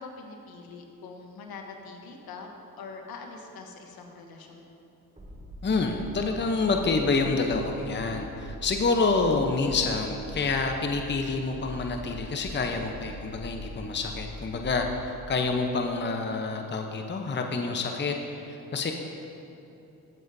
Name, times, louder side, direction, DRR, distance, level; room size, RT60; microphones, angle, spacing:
voice 1, 0.0-2.5 2.8-4.7, left 4 dB, 65° left, 2 dB, 1.2 m, -43 dB
sound 1, 5.2-15.0, equal, 20° right, 2.1 m, -42 dB
voice 2, 5.6-18.9, left 3 dB, 30° left, 3 dB, 0.8 m, -28 dB
15.0 x 7.6 x 2.7 m, 2.9 s
supercardioid pair, 60°, 38 cm